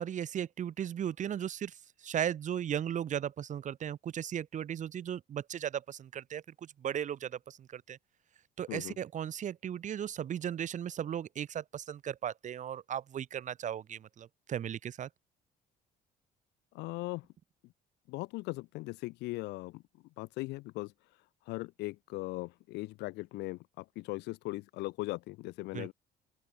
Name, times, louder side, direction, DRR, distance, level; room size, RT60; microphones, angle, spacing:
voice 1, 0.0-8.0 8.6-15.1 25.7-25.9, right 9 dB, 45° right, 1.2 m, -36 dB
voice 2, 16.7-17.3 18.1-19.8 20.2-20.9 21.5-25.9, left 21 dB, 85° left, 0.6 m, -39 dB
open air
cardioid pair, 110°, 17 cm